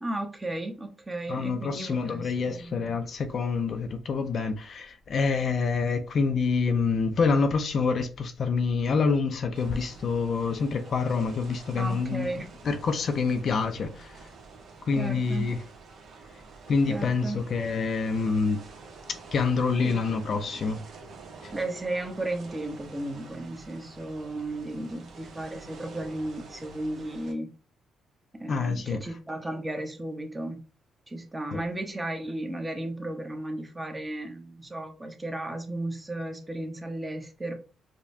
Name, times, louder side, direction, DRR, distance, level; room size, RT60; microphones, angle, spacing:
voice 1, 0.0-3.0 11.7-12.5 15.0-15.5 16.9-17.4 19.8-20.6 21.5-27.5 28.4-30.6 31.1-37.5, right 1 dB, 15° right, 0.8 m, -34 dB
voice 2, 1.3-14.1 14.9-15.6 16.7-18.6 19.3-20.8 28.5-29.0 31.5-31.6, left 4 dB, 55° left, 0.5 m, -27 dB
sound 1, 9.5-27.3, right 4 dB, 65° right, 1.0 m, -48 dB
4.9 x 2.2 x 2.6 m
cardioid pair, 90°, 0 cm